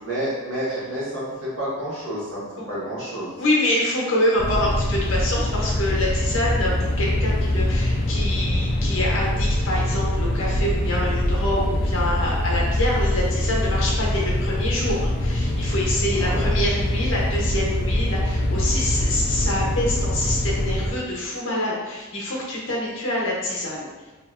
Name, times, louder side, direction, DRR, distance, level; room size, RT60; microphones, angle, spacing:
voice 1, 0.0-3.3 16.1-16.4, equal, 75° right, -9 dB, 1.3 m, -29 dB
voice 2, 3.4-24.1, left 1 dB, 70° left, -3 dB, 0.7 m, -26 dB
sound 1, 4.4-20.9, left 1 dB, 45° left, 0.4 m, -23 dB
2.9 x 2.5 x 2.4 m, 1.2 s
head